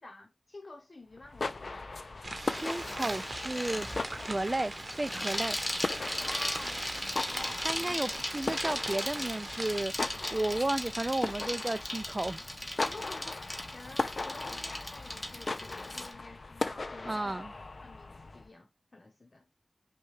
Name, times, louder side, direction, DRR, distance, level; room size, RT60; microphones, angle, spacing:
voice 1, 0.0-1.9 6.2-8.9 12.8-17.4 17.8-19.5, left 2 dB, 60° left, 0.8 m, -50 dB
sound 1, 1.1-18.5, left 3 dB, 80° left, 0.4 m, -39 dB
sound 2, 2.2-9.8, right 2 dB, 55° right, 0.8 m, -40 dB
voice 2, 2.3-3.9 4.3-5.6 7.6-12.4 17.1-17.5, right 2 dB, 35° right, 0.3 m, -33 dB
Bicycle, 2.5-16.1, left 1 dB, 30° left, 0.9 m, -38 dB
5.5 x 2.3 x 3.1 m
wide cardioid pair, 60°, 0 cm